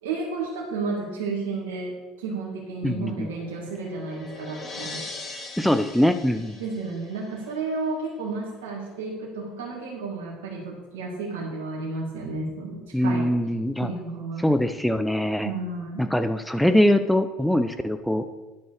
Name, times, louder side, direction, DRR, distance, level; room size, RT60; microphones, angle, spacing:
voice 1, 0.0-5.0 6.6-13.3 13.8-14.5 15.4-16.1, right 3 dB, 85° right, -4 dB, 2.2 m, -32 dB
sound 1, 2.7-7.8, left 3 dB, 30° left, 3.3 m, -41 dB
voice 2, 2.8-3.3 5.6-6.6 12.9-13.9 14.4-15.5 16.0-18.2, left 1 dB, ahead, 9 dB, 0.7 m, -22 dB
11.0 x 5.4 x 6.6 m, 1.2 s
hypercardioid pair, 75°, 0 cm